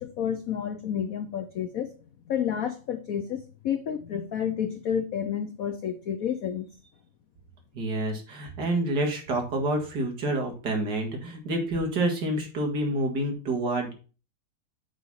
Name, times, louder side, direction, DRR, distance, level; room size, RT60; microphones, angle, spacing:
voice 1, 0.0-1.9 2.3-6.7, left 8 dB, 90° left, 0.7 m, -30 dB
voice 2, 7.7-13.9, right 1 dB, 50° right, 2.4 m, -28 dB
8.0 x 4.1 x 5.5 m
omnidirectional pair, 2.4 m